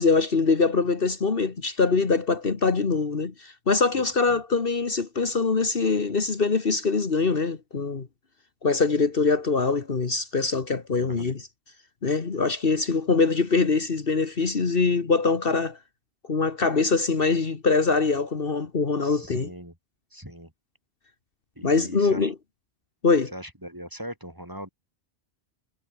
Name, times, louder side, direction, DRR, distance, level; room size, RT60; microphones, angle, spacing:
voice 1, 0.0-8.1 8.6-11.5 12.0-15.8 16.3-19.5 21.6-22.3 23.0-23.3, left 4 dB, 55° left, 1.8 m, -23 dB
voice 2, 10.9-11.3 19.0-19.7 20.1-20.5 21.6-22.3 23.3-24.7, equal, 20° right, 6.4 m, -40 dB
omnidirectional pair, 1.1 m